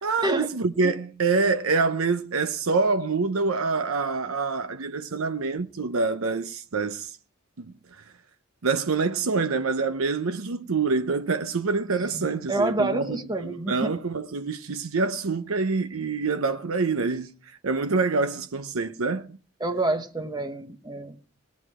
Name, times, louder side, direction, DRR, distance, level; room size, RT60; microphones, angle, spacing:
voice 1, 0.0-7.2 7.6-7.7 8.6-13.2 13.4-17.3 17.6-19.4, right 4 dB, 90° right, 0.8 m, -26 dB
voice 2, 11.9-13.9 19.6-21.3, right 2 dB, 20° right, 1.3 m, -28 dB
18.5 x 9.5 x 4.8 m
head